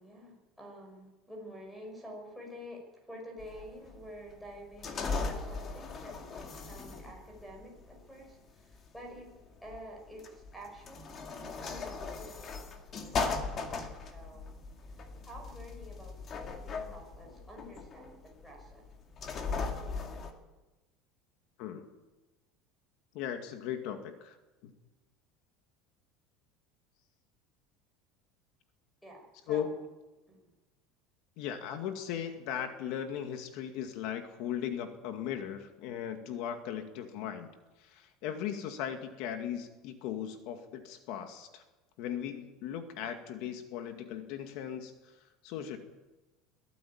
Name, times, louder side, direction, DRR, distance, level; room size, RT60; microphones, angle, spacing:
voice 1, 0.0-9.3 9.6-14.5 14.8-18.8 29.0-29.7 30.3-30.5, equal, ahead, 2 dB, 5.8 m, -49 dB
sound 1, 3.4-20.3, left 4 dB, 25° left, 2.2 m, -39 dB
voice 2, 23.1-24.4 24.6-24.7 29.5-29.7 31.4-37.5 37.8-41.6 42.0-44.9 45.4-45.8, left 9 dB, 55° left, 6 dB, 2.1 m, -37 dB
22.5 x 15.0 x 8.7 m, 1.1 s
cardioid pair, 165°, 0 cm